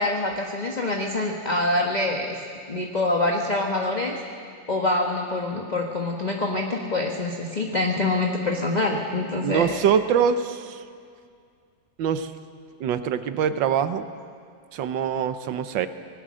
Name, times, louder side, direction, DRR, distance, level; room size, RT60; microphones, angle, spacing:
voice 1, 0.0-2.3 2.7-4.1 4.7-9.7, left 2 dB, 25° left, 0 dB, 1.4 m, -25 dB
voice 2, 9.4-10.8 12.0-12.3 12.8-14.1 14.7-15.9, right 8 dB, 75° right, 10 dB, 1.6 m, -24 dB
25.5 x 18.5 x 6.4 m, 2.2 s
omnidirectional pair, 2.1 m